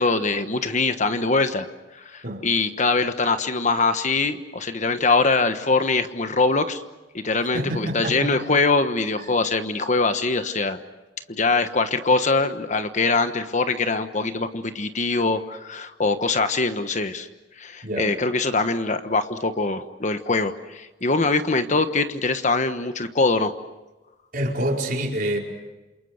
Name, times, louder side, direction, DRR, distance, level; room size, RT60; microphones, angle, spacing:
voice 1, 0.0-1.7 1.9-6.8 7.1-10.8 11.3-17.3 17.6-23.5, left 3 dB, 40° left, 9 dB, 1.3 m, -23 dB
voice 2, 7.5-8.3 17.8-18.1 24.3-25.4, right 1 dB, 50° right, 0 dB, 4.8 m, -26 dB
28.5 x 28.5 x 6.7 m, 1.1 s
head